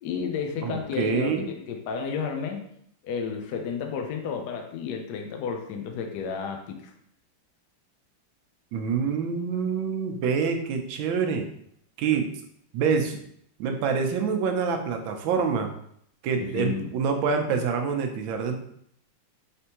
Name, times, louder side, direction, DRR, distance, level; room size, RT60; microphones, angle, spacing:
voice 1, 0.0-2.6 3.0-6.9 16.4-16.9, left 6 dB, 70° left, 3 dB, 1.1 m, -32 dB
voice 2, 0.6-1.5 8.7-11.4 12.0-12.2 12.7-13.2 13.6-15.7 16.2-18.6, right 5 dB, 90° right, 5 dB, 1.4 m, -26 dB
4.4 x 3.4 x 2.8 m, 0.68 s
omnidirectional pair, 2.1 m